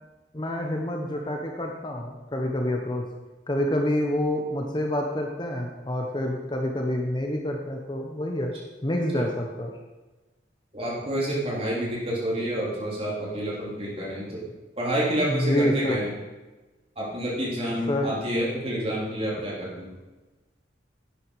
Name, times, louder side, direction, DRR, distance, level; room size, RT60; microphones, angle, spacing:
voice 1, 0.3-3.1 3.5-8.5 8.8-9.7 15.2-16.0 17.9-18.1, left 1 dB, 25° left, 2 dB, 1.0 m, -27 dB
voice 2, 10.7-14.4 14.8-16.1 17.0-19.9, right 1 dB, 35° right, -5 dB, 3.5 m, -29 dB
11.5 x 8.6 x 4.8 m, 1.2 s
head